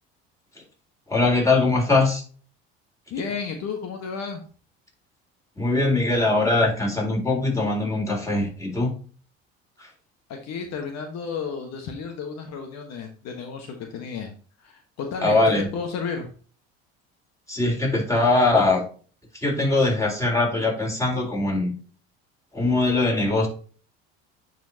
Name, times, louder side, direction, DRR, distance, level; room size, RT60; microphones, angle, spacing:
voice 1, 1.1-2.2 5.6-9.0 9.8-9.9 15.2-15.7 17.5-18.9 19.3-21.8 22.5-23.5, left 2 dB, 10° left, -1 dB, 3.7 m, -21 dB
voice 2, 3.1-4.4 10.3-14.3 14.6-16.3, left 5 dB, 60° left, 4 dB, 1.4 m, -32 dB
9.2 x 4.5 x 2.8 m, 0.40 s
supercardioid pair, 80°, 31 cm